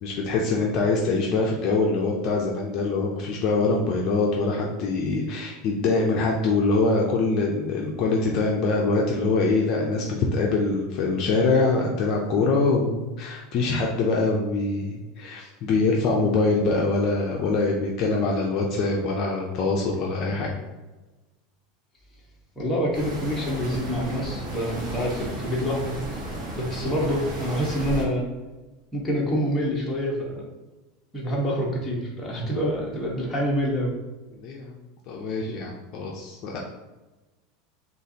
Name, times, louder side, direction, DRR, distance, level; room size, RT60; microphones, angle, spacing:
voice 1, 0.0-20.5 34.4-34.7 35.1-36.6, left 3 dB, 40° left, -1 dB, 0.5 m, -24 dB
voice 2, 22.6-26.2 26.5-28.2 28.9-30.4 31.1-33.9, equal, 10° left, -5 dB, 1.1 m, -26 dB
sound 1, 22.9-28.0, right 1 dB, 40° right, 1.2 m, -34 dB
6.6 x 2.5 x 2.8 m, 1.1 s
supercardioid pair, 155°, 0 cm